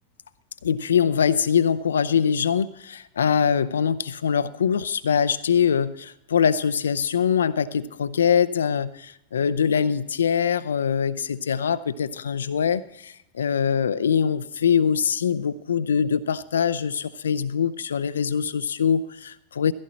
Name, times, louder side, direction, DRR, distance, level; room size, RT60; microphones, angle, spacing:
voice 1, 0.6-19.7, left 7 dB, 65° left, 14 dB, 0.5 m, -23 dB
17.0 x 15.0 x 4.2 m, 0.85 s
figure-of-eight pair, 90°, 0 cm